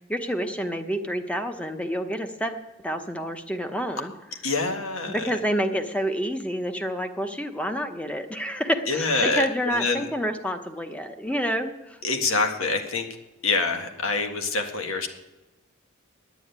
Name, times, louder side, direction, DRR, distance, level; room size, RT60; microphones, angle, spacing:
voice 1, 0.0-4.1 5.1-12.0, equal, 5° left, 7 dB, 0.9 m, -28 dB
voice 2, 4.4-5.4 8.9-10.1 12.0-13.0 13.4-15.1, left 3 dB, 80° left, 5 dB, 1.7 m, -26 dB
9.7 x 9.4 x 9.4 m, 1.1 s
head